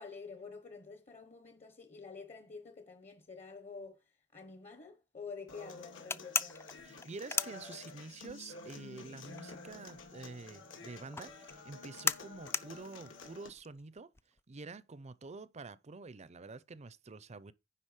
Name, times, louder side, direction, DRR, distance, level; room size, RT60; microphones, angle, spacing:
voice 1, 0.0-4.0 4.3-6.6, left 4 dB, 35° left, 1.0 m, -48 dB
Human voice / Acoustic guitar, 5.5-13.5, left 4 dB, 75° left, 2.4 m, -51 dB
sound 1, 6.1-8.3 8.6-14.4, left 4 dB, 15° left, 0.4 m, -37 dB
voice 2, 6.8-14.1 14.5-17.5, right 3 dB, 35° right, 0.6 m, -48 dB
10.0 x 4.0 x 6.5 m
head